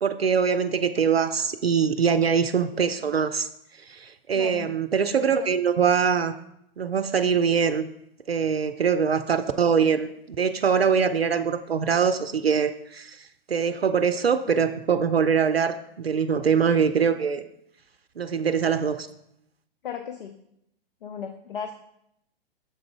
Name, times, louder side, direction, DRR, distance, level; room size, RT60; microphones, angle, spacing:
voice 1, 0.0-3.5 3.9-6.3 6.8-7.9 8.3-17.4 18.2-19.1, right 6 dB, 85° right, 9 dB, 0.5 m, -23 dB
voice 2, 4.3-4.7 19.8-20.4 21.0-21.7, left 7 dB, 65° left, 7 dB, 0.6 m, -35 dB
6.7 x 3.7 x 4.6 m, 0.77 s
figure-of-eight pair, 110°, 30 cm